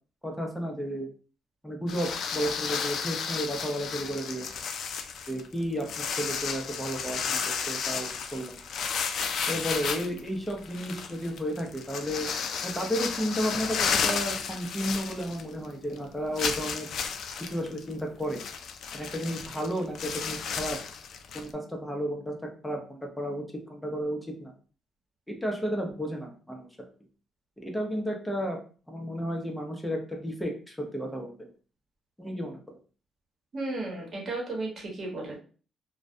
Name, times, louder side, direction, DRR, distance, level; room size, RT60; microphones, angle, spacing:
voice 1, 0.2-1.1 1.6-4.5 5.3-8.6 9.5-12.3 12.6-16.9 17.5-18.4 18.9-20.8 21.3-22.3 22.6-24.5 25.3-26.7 27.6-28.6 28.9-31.5 32.2-32.6, equal, 5° left, 2 dB, 0.7 m, -33 dB
sound 1, 1.9-15.7 15.9-16.0 16.4-21.5, left 6 dB, 70° left, 0.3 m, -33 dB
voice 2, 33.5-35.4, right 2 dB, 50° right, -1 dB, 1.0 m, -34 dB
2.3 x 2.1 x 2.6 m, 0.39 s
cardioid pair, 90°, 0 cm